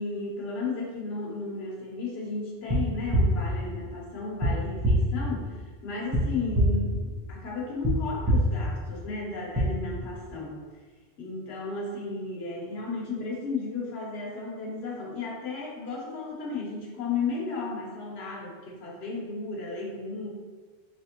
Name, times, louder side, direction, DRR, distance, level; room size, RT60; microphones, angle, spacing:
voice 1, 0.0-10.6 11.2-20.3, left 3 dB, 60° left, -3 dB, 1.1 m, -34 dB
sound 1, 2.7-2.8 3.1-3.2 4.4-4.5 4.8-4.9 6.1-6.2 6.5-6.6 7.8-7.9 8.2-8.3 9.5-9.6, equal, 20° right, 0.8 m, -22 dB
4.1 x 3.3 x 2.8 m, 1.5 s
omnidirectional pair, 1.2 m